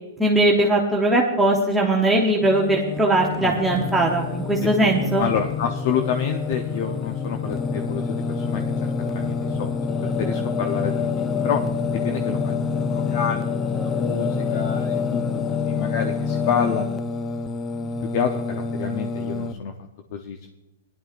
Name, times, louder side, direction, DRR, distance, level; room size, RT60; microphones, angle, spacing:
voice 1, 0.2-5.2, right 1 dB, 5° right, -3 dB, 0.9 m, -20 dB
Singing, 2.4-19.5, left 5 dB, 20° left, 0.4 m, -27 dB
voice 2, 5.2-11.6 12.0-15.2 15.5-16.8 17.8-19.7 20.1-20.4, left 7 dB, 50° left, 5 dB, 0.7 m, -29 dB
17.5 x 11.0 x 2.5 m, 1.1 s
hypercardioid pair, 145°, 0 cm